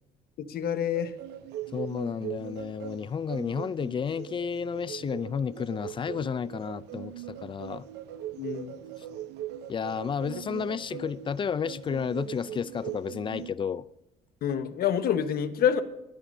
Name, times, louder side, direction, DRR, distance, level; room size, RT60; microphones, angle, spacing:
voice 1, 0.4-1.1 8.4-8.7 14.4-15.8, left 8 dB, 65° left, 1.3 m, -27 dB
sound 1, 0.9-13.5, right 11 dB, 85° right, 0.8 m, -40 dB
voice 2, 1.7-7.9 9.0-9.1 9.7-13.9, left 6 dB, 30° left, 0.5 m, -32 dB
24.0 x 10.0 x 2.7 m
cardioid pair, 110°, 17 cm